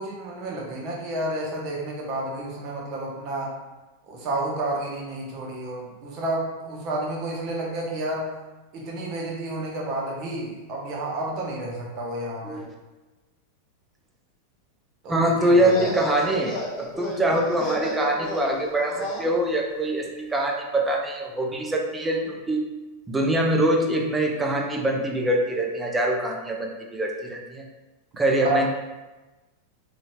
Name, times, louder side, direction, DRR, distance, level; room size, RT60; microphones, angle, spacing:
voice 1, 0.0-3.6 4.1-8.3 8.7-12.6 15.0-15.8 28.4-28.7, right 1 dB, 40° right, -2 dB, 0.9 m, -30 dB
voice 2, 15.1-22.7 23.1-27.7 28.2-28.7, right 1 dB, 10° right, 1 dB, 0.5 m, -24 dB
sound 1, 15.4-19.3, left 1 dB, 30° left, 0.9 m, -33 dB
3.9 x 3.1 x 2.3 m, 1.1 s
figure-of-eight pair, 90°, 0 cm